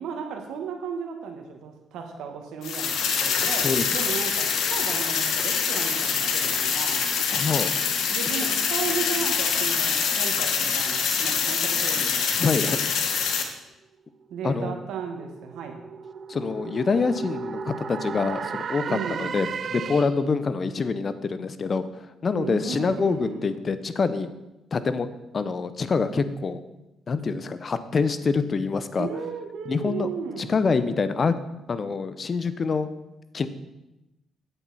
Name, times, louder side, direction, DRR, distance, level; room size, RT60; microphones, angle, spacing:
voice 1, 0.0-7.1 8.1-12.8 14.3-15.8 18.9-19.4 22.3-23.6 29.0-30.5, right 6 dB, 85° right, 4 dB, 1.4 m, -35 dB
sound 1, 2.6-13.4, left 6 dB, 75° left, 1.2 m, -25 dB
voice 2, 7.3-7.7 12.4-12.8 14.4-14.7 16.3-21.9 22.2-24.3 24.7-25.1 25.3-26.6 27.1-29.1 29.7-30.1 30.4-31.3 31.7-32.9 33.3-33.5, left 4 dB, 40° left, 12 dB, 0.7 m, -25 dB
sound 2, 14.2-20.4, right 6 dB, 55° right, 0.4 m, -35 dB
8.9 x 8.3 x 4.2 m, 0.96 s
cardioid pair, 90°, 0 cm